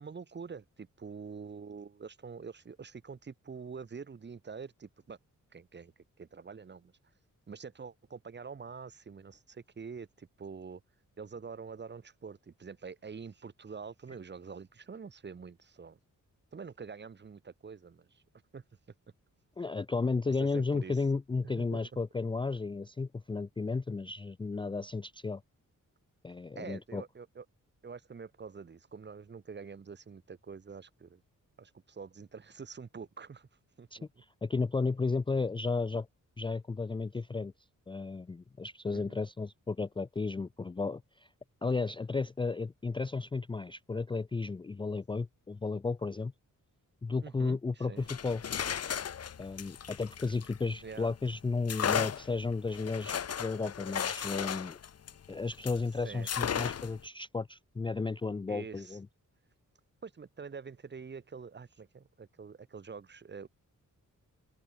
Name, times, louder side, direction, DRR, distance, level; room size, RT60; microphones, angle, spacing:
voice 1, 0.0-5.2 5.5-5.9 6.2-6.9 7.5-10.8 11.2-16.0 16.5-18.2 18.5-18.6 20.3-20.9 21.6-21.8 26.6-27.4 27.8-31.2 31.6-33.5 33.8-33.9 38.9-39.2 47.2-48.1 50.8-51.1 56.0-56.3 58.5-59.0 60.0-63.5, right 5 dB, 35° right, 1.3 m, -46 dB
voice 2, 19.6-25.4 26.2-27.0 33.9-36.1 36.4-37.5 37.9-41.3 41.6-46.3 47.0-48.4 49.4-54.8 55.3-59.1, left 4 dB, 15° left, 0.4 m, -33 dB
sound 1, 48.0-51.0 51.7-55.8 56.3-57.0, left 8 dB, 50° left, 1.0 m, -35 dB
wide cardioid pair, 155°, 32 cm